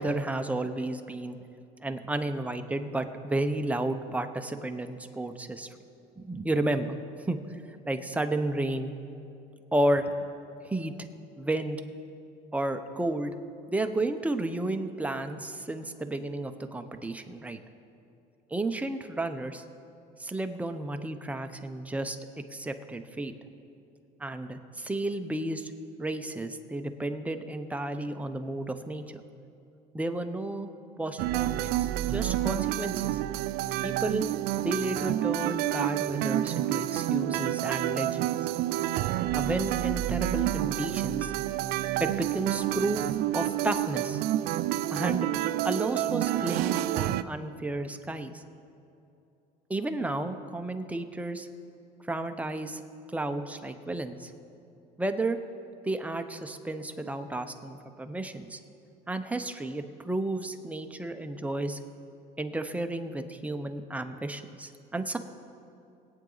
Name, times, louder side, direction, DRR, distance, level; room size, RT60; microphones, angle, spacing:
voice 1, 0.0-1.4 1.8-5.7 6.2-7.0 7.3-7.6 7.8-8.9 9.7-10.1 10.6-10.9 11.4-11.8 12.5-13.3 13.7-17.6 18.5-19.6 20.2-22.2 22.5-23.3 24.2-25.7 26.0-29.2 29.9-30.7 31.0-33.2 33.8-34.3 34.6-38.3 39.3-41.3 42.0-43.0 43.3-44.2 44.9-45.3 45.6-48.4 49.7-51.5 52.1-52.8 53.1-54.3 55.0-55.4 55.8-58.6 59.1-61.8 62.4-65.2, right 2 dB, 10° right, 6 dB, 0.7 m, -32 dB
sound 1, 31.2-47.2, right 14 dB, 70° right, 0.4 m, -29 dB
21.0 x 8.9 x 4.0 m, 2.7 s
cardioid pair, 120°, 17 cm